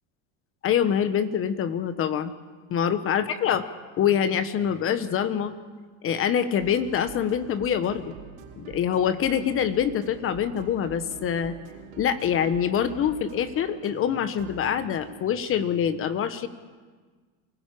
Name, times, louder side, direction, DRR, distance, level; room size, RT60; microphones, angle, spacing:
voice 1, 0.6-2.3 2.7-3.6 4.0-5.5 6.0-8.1 8.6-11.6 12.0-16.5, left 8 dB, 35° left, 12 dB, 1.1 m, -25 dB
sound 1, 6.6-15.0, right 8 dB, 65° right, 5.6 m, -45 dB
24.0 x 16.0 x 8.5 m, 1.4 s
supercardioid pair, 140°, 39 cm